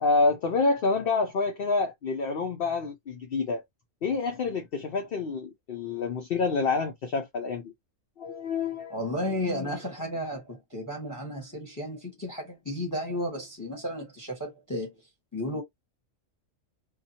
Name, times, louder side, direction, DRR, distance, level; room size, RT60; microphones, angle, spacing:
voice 1, 0.0-3.6 4.0-7.7 8.2-9.0, left 4 dB, 55° left, 0.8 m, -27 dB
voice 2, 8.9-15.0 15.3-15.6, left 1 dB, 15° left, 1.1 m, -33 dB
2.6 x 2.4 x 2.7 m
omnidirectional pair, 1.4 m